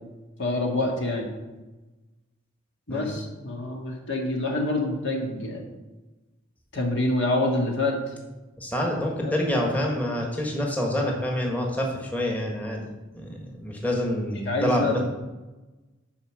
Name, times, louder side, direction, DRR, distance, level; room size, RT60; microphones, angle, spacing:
voice 1, 0.4-1.3 2.9-5.6 6.7-8.0 9.2-9.3 14.5-15.0, left 2 dB, 60° left, 0 dB, 2.0 m, -26 dB
voice 2, 8.6-12.9 13.1-15.0, left 1 dB, 10° left, -1 dB, 1.4 m, -27 dB
9.6 x 5.1 x 6.4 m, 1.1 s
head